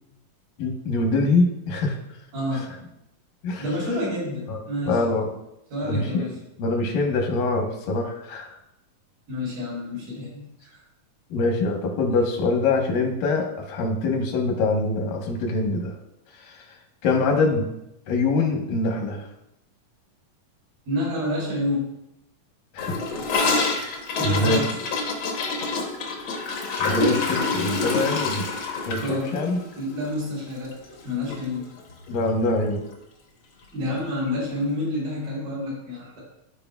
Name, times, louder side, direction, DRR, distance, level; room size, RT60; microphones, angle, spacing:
voice 1, 0.6-2.0 3.4-3.6 4.5-4.6 4.9-5.3 5.8-8.5 11.3-16.0 16.4-16.6 17.0-17.7 18.1-19.3 22.7-23.0 23.8-23.9 24.2-24.6 26.8-28.4 28.8-29.6 32.1-32.8, left 3 dB, 85° left, 2 dB, 2.8 m, -24 dB
voice 2, 2.3-2.7 3.6-5.0 5.7-6.3 9.3-10.8 20.9-21.9 24.2-24.7 28.9-29.3 29.7-30.7 31.0-31.7 33.7-36.2, left 1 dB, 80° right, -6 dB, 4.6 m, -28 dB
Gurgling / Toilet flush, 22.8-31.0 31.3-31.4 31.7-32.2 32.4-32.5 32.8-32.9 33.9-34.0, left 3 dB, 65° left, 1.2 m, -27 dB
13.5 x 4.8 x 2.3 m, 0.84 s
omnidirectional pair, 3.8 m